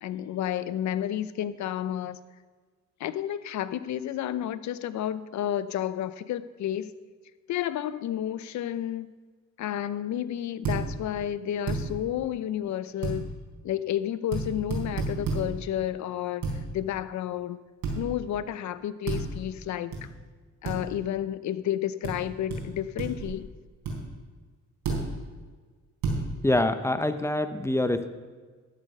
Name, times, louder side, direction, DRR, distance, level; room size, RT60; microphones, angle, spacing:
voice 1, 0.0-2.2 3.0-6.9 7.5-9.1 9.6-13.3 13.6-17.6 17.9-20.1 20.6-23.5, left 11 dB, 70° left, 15 dB, 0.7 m, -31 dB
sound 1, 10.6-10.8 11.7-11.8 13.0-13.2 14.3-14.4 14.7-15.4 16.4-16.6 17.8-18.0 19.1-19.2 19.9-20.0 20.6-20.8 22.0-22.1 22.5-22.6 23.0-23.3 23.8-24.0 24.8-25.0 26.0-26.2, right 4 dB, 85° right, 3.8 m, -29 dB
voice 2, 26.4-28.1, left 1 dB, 10° left, 10 dB, 0.7 m, -25 dB
13.0 x 7.4 x 5.4 m, 1.4 s
cardioid pair, 90°, 30 cm